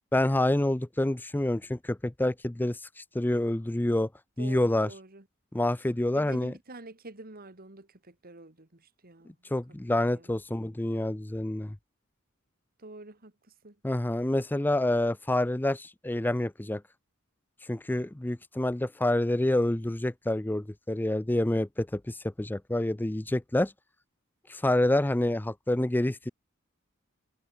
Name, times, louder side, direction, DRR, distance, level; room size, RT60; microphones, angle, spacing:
voice 1, 0.1-4.1 4.4-4.9 5.5-6.5 9.5-11.7 13.8-16.8 17.7-23.7 24.5-26.3, left 1 dB, 10° left, 0.5 m, -27 dB
voice 2, 4.4-5.2 6.1-9.3 10.1-10.3 12.8-13.3 13.6-13.7, right 2 dB, 45° right, 2.3 m, -47 dB
head